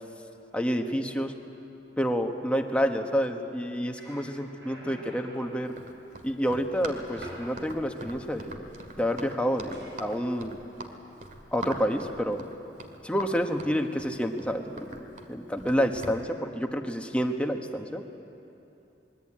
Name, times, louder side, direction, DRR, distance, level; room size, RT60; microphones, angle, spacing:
voice 1, 0.5-1.3 2.0-5.8 6.2-8.7 9.0-10.6 11.5-12.4 13.0-15.0 15.3-18.0, equal, 5° left, 4 dB, 1.3 m, -29 dB
sound 1, 3.5-3.6 3.9-5.6 6.7-7.5 9.7-10.0, right 1 dB, 85° right, 5.8 m, -47 dB
Run, 5.7-16.2, right 1 dB, 50° right, 2.2 m, -42 dB
23.0 x 21.5 x 8.8 m, 2.9 s
head